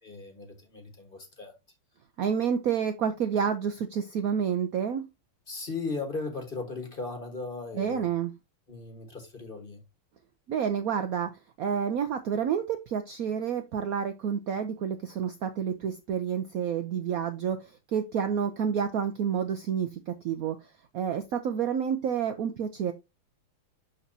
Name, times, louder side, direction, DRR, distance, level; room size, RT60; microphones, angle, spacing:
voice 1, 0.0-1.5 5.5-8.1 8.7-9.8, left 3 dB, 30° left, 1.5 m, -37 dB
voice 2, 2.2-5.1 7.8-8.3 10.5-11.3 11.6-22.9, right 7 dB, 85° right, 0.7 m, -29 dB
11.5 x 4.0 x 2.7 m
omnidirectional pair, 2.3 m